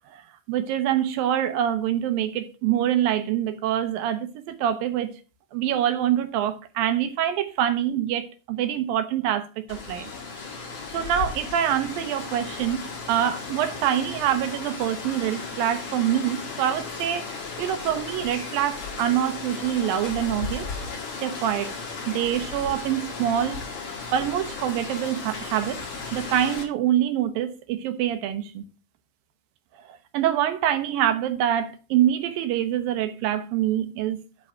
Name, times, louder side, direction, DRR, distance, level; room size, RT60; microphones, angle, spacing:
voice 1, 0.5-5.2 5.5-10.1 10.9-20.7 21.2-21.7 22.1-23.6 24.1-25.8 26.1-28.6 29.7-34.2, right 10 dB, 75° right, 2.3 m, -25 dB
Rain, 9.7-26.6, left 4 dB, 50° left, 4.6 m, -35 dB
9.7 x 4.7 x 6.2 m
omnidirectional pair, 4.9 m